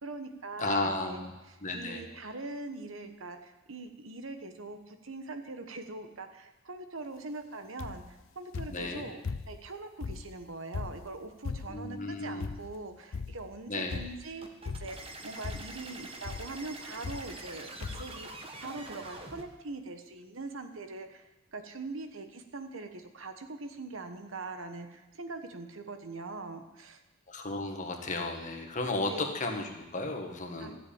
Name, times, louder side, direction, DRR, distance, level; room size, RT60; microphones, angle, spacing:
voice 1, 0.0-1.2 1.5-8.0 8.3-9.2 9.5-14.5 14.8-27.0 29.1-29.3 30.6-30.7, right 3 dB, 70° right, 7 dB, 1.3 m, -42 dB
voice 2, 0.6-1.3 1.6-2.0 8.7-9.0 11.7-12.5 13.7-14.0 27.3-30.8, left 2 dB, 35° left, 3 dB, 1.7 m, -34 dB
sound 1, 7.8-8.2 8.5-9.7 10.0-11.9 12.4-12.8 13.1-13.6 13.9-14.3 14.7-15.1 15.4-15.9 16.2-16.6 17.0-17.6 17.8-18.2 18.9-19.0 19.2-19.3, left 4 dB, 70° left, 0.5 m, -39 dB
sound 2, 14.4-19.4, right 2 dB, 25° right, 1.3 m, -45 dB
13.5 x 7.8 x 8.8 m, 1.0 s
head